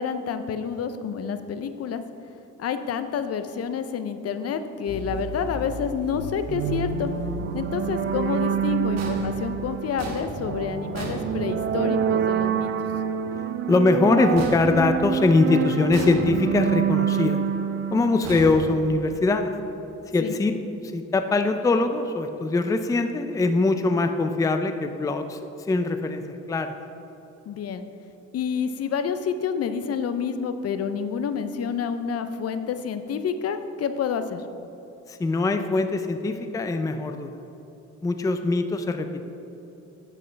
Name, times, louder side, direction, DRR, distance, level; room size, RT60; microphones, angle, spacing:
voice 1, 0.0-2.0 2.6-7.1 7.5-12.7 20.2-20.3 27.5-27.8 28.3-34.4, left 6 dB, 55° left, 10 dB, 0.6 m, -28 dB
sound 1, 4.9-10.9, equal, 90° left, 0.9 m, -39 dB
sound 2, 6.5-19.0, right 8 dB, 45° right, 0.5 m, -27 dB
sound 3, 9.0-12.0 14.3-15.4 15.9-16.7 18.2-19.3, right 2 dB, 60° right, 1.3 m, -36 dB
voice 2, 13.7-17.4 17.9-19.5 20.1-20.5 20.8-25.4 25.7-26.2 26.5-26.7 35.1-37.3 38.0-39.2, left 3 dB, 10° left, 7 dB, 0.4 m, -22 dB
9.4 x 7.5 x 3.3 m, 3.0 s
cardioid pair, 90°, 30 cm